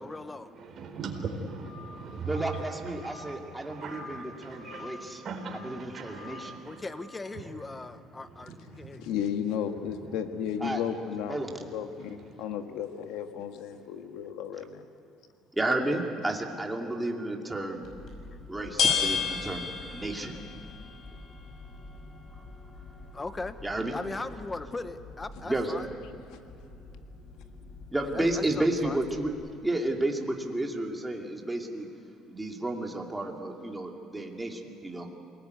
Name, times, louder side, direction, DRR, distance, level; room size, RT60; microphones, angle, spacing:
voice 1, 0.0-0.5 6.6-9.0 18.3-18.5 23.1-23.6 23.9-25.9 27.9-29.0, left 3 dB, 15° left, 0.9 m, -39 dB
voice 2, 0.5-6.9 7.3-7.8 8.2-9.0 9.8-10.1 12.0-12.5, right 3 dB, 40° right, 4.1 m, -41 dB
voice 3, 2.2-5.2 5.5-6.5 10.6-10.8 11.3-11.5 15.6-17.8 18.5-19.6 19.9-20.4 23.6-23.9 25.4-25.8 27.9-29.3 29.6-31.9 32.3-35.1, right 1 dB, 10° right, 2.5 m, -31 dB
voice 4, 8.7-14.9, left 8 dB, 85° left, 1.6 m, -34 dB
sound 1, 17.8-29.3, left 6 dB, 50° left, 5.9 m, -36 dB
28.0 x 19.5 x 9.5 m
cardioid pair, 145°, 0 cm